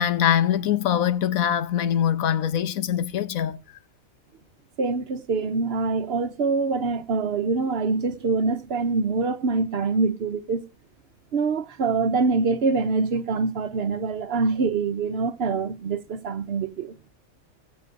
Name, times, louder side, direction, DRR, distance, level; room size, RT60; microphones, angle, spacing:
voice 1, 0.0-3.6, left 9 dB, 90° left, 1.3 m, -23 dB
voice 2, 4.8-10.6 11.3-17.0, right 4 dB, 55° right, 0.8 m, -25 dB
20.0 x 7.0 x 2.6 m
omnidirectional pair, 1.4 m